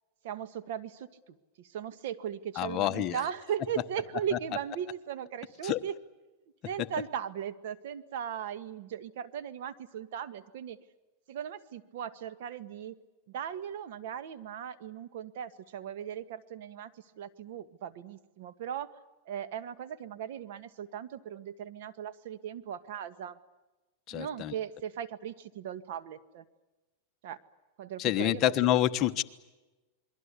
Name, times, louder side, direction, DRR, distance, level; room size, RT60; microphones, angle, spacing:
voice 1, 0.2-6.0 6.6-10.8 11.3-12.9 13.3-18.9 19.2-23.4 24.1-26.4 27.2-27.4 27.8-28.9, right 9 dB, 65° right, 13 dB, 1.7 m, -38 dB
voice 2, 2.6-3.2 5.6-5.8 24.1-24.5 28.0-29.2, left 12 dB, 35° left, 8 dB, 1.2 m, -27 dB
28.5 x 22.5 x 8.4 m, 1.1 s
supercardioid pair, 150°, 0 cm